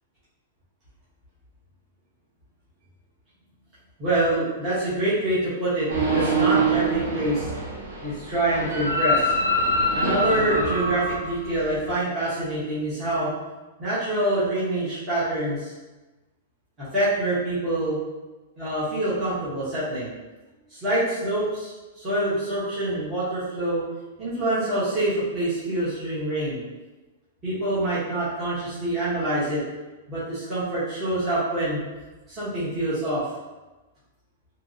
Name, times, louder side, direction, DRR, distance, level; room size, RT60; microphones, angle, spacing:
voice 1, 4.0-7.5 8.0-9.3 9.9-13.3 13.8-15.7 16.8-18.0 18.6-20.1 20.7-23.8 24.2-26.6 27.4-29.6 30.1-31.8 32.3-33.2, right 1 dB, 15° right, -12 dB, 0.9 m, -26 dB
sound 1, 5.9-11.9, right 1 dB, 70° right, 0.7 m, -25 dB
2.8 x 2.7 x 2.6 m, 1.1 s
supercardioid pair, 170°, 0 cm